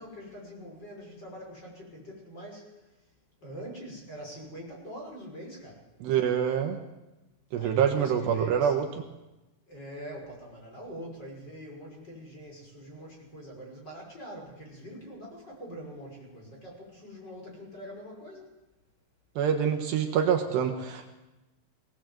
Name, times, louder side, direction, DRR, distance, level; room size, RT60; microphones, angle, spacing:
voice 1, 0.0-2.7 3.4-5.8 7.6-9.0 9.7-18.5, equal, 20° left, -1 dB, 6.3 m, -44 dB
voice 2, 6.0-6.8 7.5-8.9 19.4-21.1, right 8 dB, 70° right, 5 dB, 3.4 m, -26 dB
21.5 x 17.5 x 7.9 m, 1.0 s
omnidirectional pair, 5.2 m